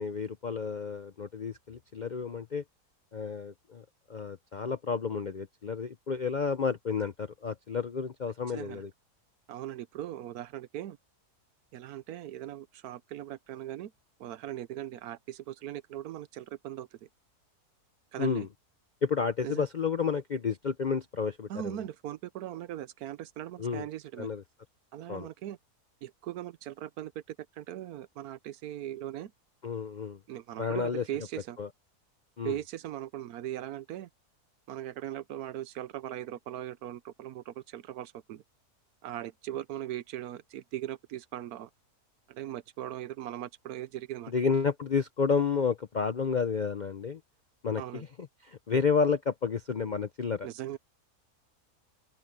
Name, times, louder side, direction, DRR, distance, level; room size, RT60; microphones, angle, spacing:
voice 1, 0.0-2.6 3.1-3.8 4.1-8.9 18.2-18.5 19.0-21.5 23.6-23.9 24.2-24.4 25.1-25.3 29.6-30.2 30.6-31.0 31.6-31.7 32.4-32.5 44.3-47.2 47.6-48.1 48.5-50.5, left 5 dB, 55° left, 0.5 m, -30 dB
voice 2, 8.5-8.8 9.5-11.0 11.7-13.9 14.2-17.1 18.1-18.5 19.4-19.6 21.5-24.3 24.9-25.6 26.0-29.3 30.3-31.6 32.4-34.1 34.7-38.4 39.0-41.7 42.3-44.3 47.8-48.0 50.4-50.8, right 12 dB, 75° right, 1.1 m, -39 dB
open air
omnidirectional pair, 1.7 m